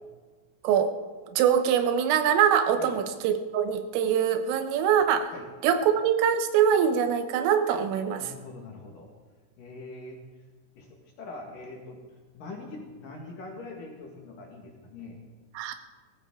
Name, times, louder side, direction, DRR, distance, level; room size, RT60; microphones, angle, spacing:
voice 1, 0.6-1.0 1.3-5.3 5.6-8.2 15.6-15.7, right 8 dB, 90° right, 8 dB, 3.6 m, -23 dB
voice 2, 8.1-9.1 9.6-10.2 10.7-12.0 12.3-15.2, left 3 dB, 55° left, 0 dB, 2.8 m, -43 dB
18.5 x 15.0 x 3.7 m, 1.4 s
omnidirectional pair, 5.7 m